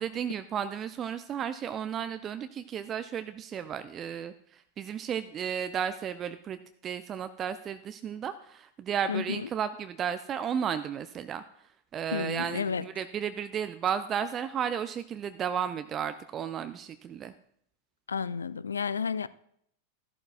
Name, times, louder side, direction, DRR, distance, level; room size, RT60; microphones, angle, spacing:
voice 1, 0.0-11.4 11.9-17.3, right 8 dB, 25° right, 0.3 m, -33 dB
voice 2, 12.1-12.8 18.1-19.3, left 6 dB, 70° left, 0.3 m, -31 dB
13.5 x 11.5 x 2.3 m
figure-of-eight pair, 90°, 0 cm